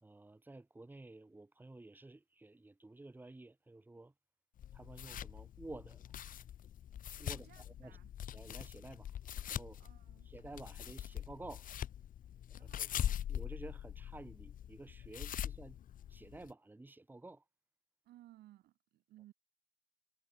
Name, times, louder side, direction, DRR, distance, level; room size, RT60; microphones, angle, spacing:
voice 1, 0.0-4.1 4.7-6.0 7.2-8.0 8.3-9.1 9.5-9.8 10.3-11.7 12.6-12.9 13.3-15.8 16.1-17.4, right 2 dB, 10° right, 2.2 m, -52 dB
sound 1, 4.6-16.5, left 10 dB, 55° left, 1.9 m, -43 dB
voice 2, 7.3-8.1 9.8-10.3 12.5-13.2 18.0-19.3, right 15 dB, 75° right, 5.5 m, -61 dB
cardioid pair, 110°, 17 cm